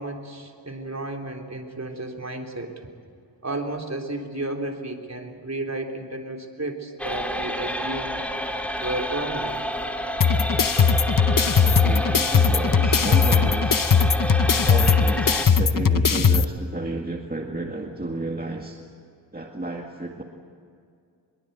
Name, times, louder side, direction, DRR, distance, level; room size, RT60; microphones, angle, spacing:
voice 1, 0.0-2.8 3.4-8.2 8.8-9.6, right 2 dB, 35° right, 2 dB, 3.6 m, -32 dB
sound 1, 7.0-15.5, equal, 5° left, 2.4 m, -29 dB
sound 2, 10.2-16.4, left 5 dB, 45° left, 0.9 m, -19 dB
voice 2, 11.6-13.8 14.6-18.8 19.3-20.2, right 2 dB, 20° right, 1 dB, 2.1 m, -32 dB
24.0 x 22.5 x 8.1 m, 2.3 s
wide cardioid pair, 75°, 44 cm